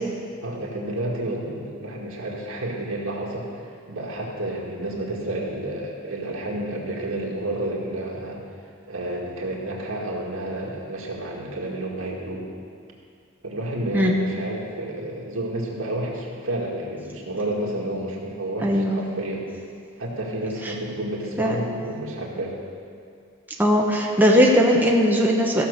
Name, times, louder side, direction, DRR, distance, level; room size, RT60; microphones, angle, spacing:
voice 1, 0.4-3.6 3.9-8.4 8.9-12.5 13.4-19.5 20.0-22.6, right 1 dB, 80° right, -2 dB, 2.0 m, -30 dB
voice 2, 18.6-19.0 20.6-20.7 21.4-21.7 23.6-25.6, equal, 10° right, -2 dB, 0.9 m, -19 dB
15.0 x 6.0 x 6.7 m, 2.3 s
head